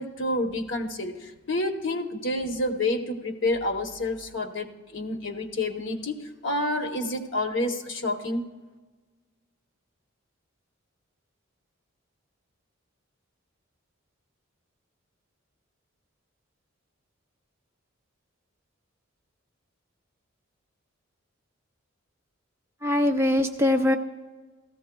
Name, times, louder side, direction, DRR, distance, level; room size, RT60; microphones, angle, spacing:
voice 1, 0.0-8.5, left 1 dB, 60° left, 4 dB, 0.9 m, -29 dB
voice 2, 22.8-24.0, left 1 dB, 10° right, 5 dB, 0.4 m, -22 dB
16.0 x 14.5 x 2.3 m, 1.3 s
head